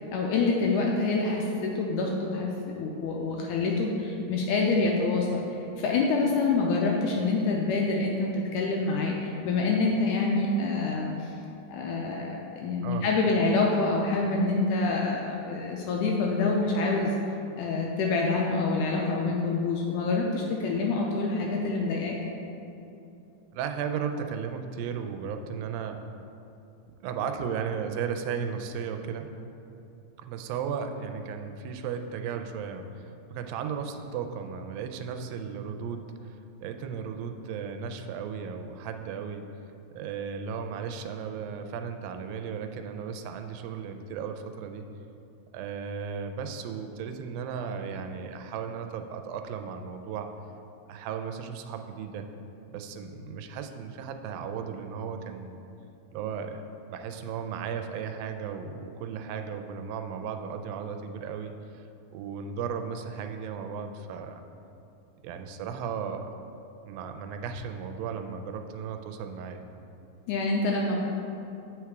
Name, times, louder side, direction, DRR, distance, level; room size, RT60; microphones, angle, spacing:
voice 1, 0.1-2.5 2.8-11.3 11.7-17.2 17.6-22.2 70.3-71.0, left 3 dB, 80° left, -1 dB, 1.9 m, -26 dB
voice 2, 23.5-26.1 27.0-29.4 30.2-39.5 39.9-44.8 45.5-50.3 50.9-52.3 52.7-55.6 56.1-56.6 56.9-61.8 62.1-64.4 65.2-66.3 66.9-69.7, right 6 dB, 85° right, 6 dB, 2.3 m, -35 dB
8.5 x 4.8 x 4.6 m, 2.8 s
omnidirectional pair, 4.1 m